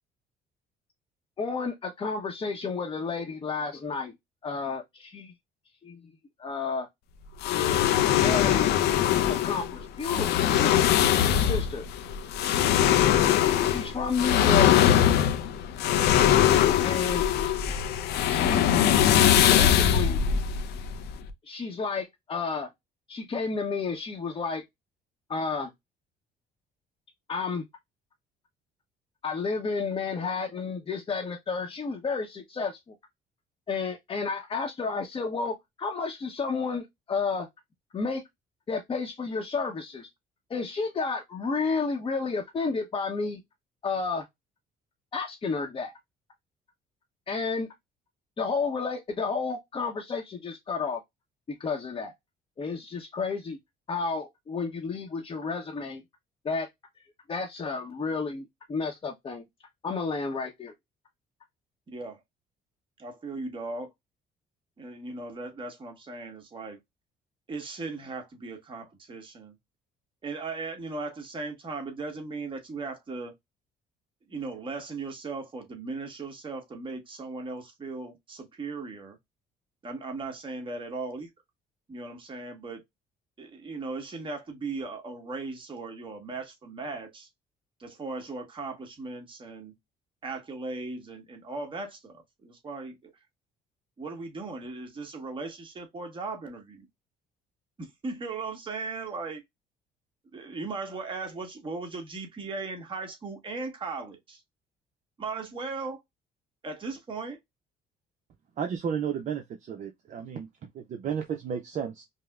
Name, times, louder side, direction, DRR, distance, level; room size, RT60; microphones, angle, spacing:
voice 1, 1.4-4.1 4.4-5.3 5.8-6.0 6.4-6.9 7.5-8.7 9.4-11.0 11.4-11.8 12.4-12.8 13.6-14.7 16.8-17.3 18.3-18.8 19.5-20.2 21.4-22.7 23.1-24.6 25.3-25.7 27.3-27.6 29.2-32.9 33.7-37.5 37.9-38.2 38.7-40.1 40.5-43.4 43.8-44.2 45.1-45.9 47.3-47.7 48.4-51.0 51.5-52.1 52.6-53.6 53.9-56.0 56.4-56.7 57.3-59.4 59.8-60.7, left 4 dB, 30° left, 0.8 m, -31 dB
sound 1, 7.4-21.3, left 10 dB, 75° left, 0.5 m, -22 dB
voice 2, 61.9-62.2 63.0-63.9 64.8-66.8 67.5-69.6 70.2-73.3 74.3-79.2 79.8-81.3 81.9-82.8 83.4-87.3 87.8-89.7 90.2-93.0 94.0-96.9 97.8-99.4 100.3-104.4 105.2-106.0 106.6-107.4, right 3 dB, 30° right, 1.3 m, -37 dB
voice 3, 108.6-112.0, right 7 dB, 45° right, 0.6 m, -33 dB
5.2 x 2.1 x 2.3 m
cardioid pair, 110°, 17 cm